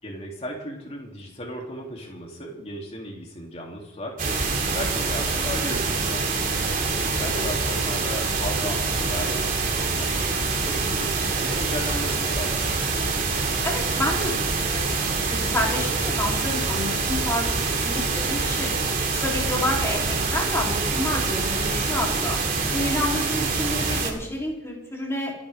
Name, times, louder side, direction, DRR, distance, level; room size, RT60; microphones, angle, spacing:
voice 1, 0.0-12.7, equal, 35° left, -1 dB, 3.4 m, -36 dB
sound 1, 4.2-24.1, right 4 dB, 50° right, 2.8 m, -25 dB
voice 2, 13.6-14.9 15.3-18.7 19.1-22.4 22.7-25.3, left 1 dB, 15° left, -3 dB, 3.9 m, -29 dB
27.5 x 10.0 x 3.8 m, 0.98 s
head